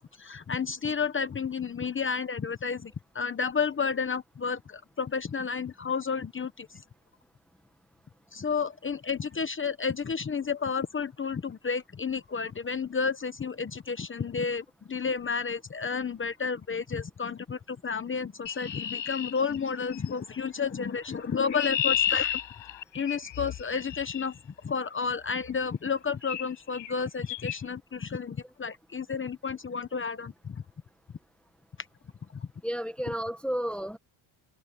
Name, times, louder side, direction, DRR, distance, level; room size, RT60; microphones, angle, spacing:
voice 1, 0.2-6.8 8.3-22.4 22.9-24.4 24.6-30.6 32.3-32.5, left 5 dB, 25° left, 1.0 m, -31 dB
Chirp tweet, 18.5-20.1 21.1-24.3 25.4-25.6 26.2-26.5 26.7-27.0 27.3-27.6, left 10 dB, 65° left, 5.7 m, -32 dB
voice 2, 32.6-34.0, equal, ahead, 1.2 m, -32 dB
cardioid pair, 135°, 49 cm